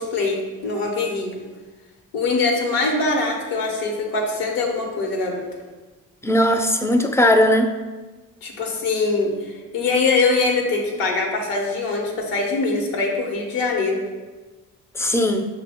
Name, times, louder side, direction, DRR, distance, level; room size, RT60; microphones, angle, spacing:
voice 1, 0.0-1.4 2.1-5.4 8.4-14.0, left 3 dB, 80° left, 1 dB, 1.0 m, -23 dB
voice 2, 6.2-7.7 14.9-15.5, left 1 dB, 10° left, 5 dB, 0.3 m, -18 dB
5.8 x 2.2 x 3.5 m, 1.2 s
cardioid pair, 80°, 34 cm